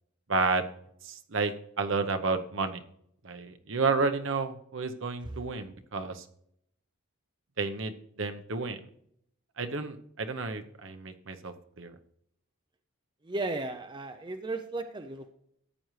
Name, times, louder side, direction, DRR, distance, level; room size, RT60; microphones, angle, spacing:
voice 1, 0.3-0.7 1.0-2.8 3.2-6.2 7.6-7.9 8.2-8.8 9.6-12.0, right 4 dB, 60° right, 7 dB, 0.9 m, -31 dB
voice 2, 13.3-15.4, right 2 dB, 20° right, 7 dB, 0.4 m, -35 dB
14.0 x 8.9 x 3.2 m, 0.70 s
head